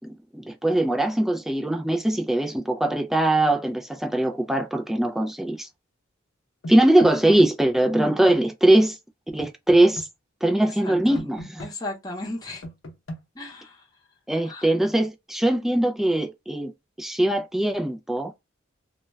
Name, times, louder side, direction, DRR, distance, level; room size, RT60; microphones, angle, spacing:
voice 1, 0.0-5.7 6.7-9.0 9.3-10.1 10.4-11.6 14.3-16.7 17.0-18.3, right 1 dB, ahead, 0.3 m, -21 dB
sound 1, 6.6-7.5 9.4-10.1 11.2-11.7 12.6-13.2, equal, 80° left, 0.7 m, -36 dB
voice 2, 10.6-11.3 11.6-12.6 13.3-13.8 14.4-14.7, left 2 dB, 20° left, 0.8 m, -36 dB
2.2 x 2.2 x 3.1 m
head